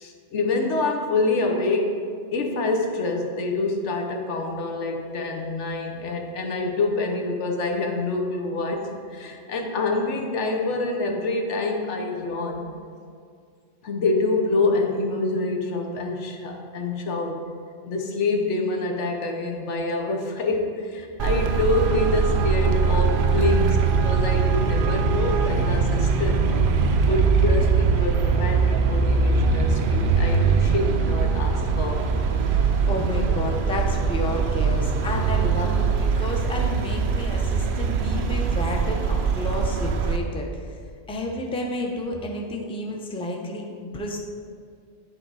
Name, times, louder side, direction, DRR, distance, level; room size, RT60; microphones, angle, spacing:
voice 1, 0.0-2.0 2.3-12.7 13.8-17.4 17.9-26.5 27.0-32.1, left 3 dB, 80° left, 2 dB, 1.2 m, -26 dB
Traffic noise roadway noise, 21.2-40.2, right 5 dB, 60° right, 0.6 m, -22 dB
voice 2, 32.4-40.5 41.1-44.2, left 1 dB, 5° left, 0 dB, 0.6 m, -31 dB
10.0 x 3.7 x 4.7 m, 2.2 s
omnidirectional pair, 1.2 m